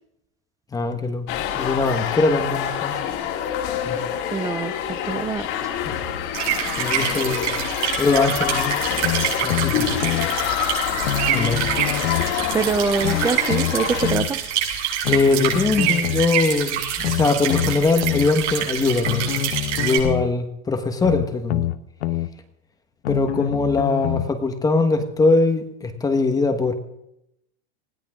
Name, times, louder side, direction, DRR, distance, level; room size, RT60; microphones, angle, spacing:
voice 1, 0.7-3.0 3.9-4.0 5.8-6.0 6.8-7.5 8.0-8.8 9.4-9.9 11.3-11.6 15.1-19.3 19.8-21.7 23.1-26.7, left 3 dB, 10° left, 7 dB, 1.3 m, -22 dB
sound 1, 1.3-14.1, left 9 dB, 40° left, 2.5 m, -26 dB
voice 2, 4.3-5.5 12.5-14.4, right 5 dB, 10° right, 12 dB, 0.5 m, -24 dB
sound 2, 6.3-20.0, right 9 dB, 80° right, 7.4 m, -26 dB
sound 3, 9.0-10.3 11.0-12.3 13.0-14.3 15.0-16.3 17.0-18.3 19.0-20.3 21.0-22.3 23.0-24.3 25.0-25.1, left 12 dB, 75° left, 1.3 m, -25 dB
20.0 x 16.5 x 3.7 m, 0.80 s
supercardioid pair, 170°, 34 cm